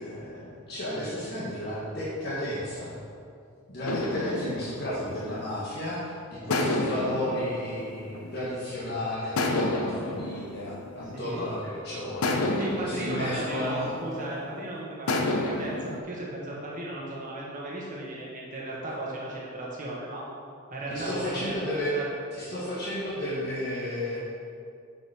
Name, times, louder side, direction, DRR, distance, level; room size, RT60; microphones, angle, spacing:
voice 1, 0.0-3.0 3.7-6.0 6.3-12.5 12.8-13.9 20.9-22.0 22.3-24.2, left 1 dB, 50° left, -8 dB, 1.6 m, -32 dB
sound 1, 3.8-5.9 6.5-8.8 9.4-11.6 12.2-14.4 15.1-16.0, left 2 dB, 85° left, 0.7 m, -31 dB
voice 2, 11.1-11.5 12.5-20.2 20.7-22.1, right 1 dB, 35° right, -5 dB, 1.4 m, -36 dB
8.2 x 5.2 x 4.9 m, 2.4 s
head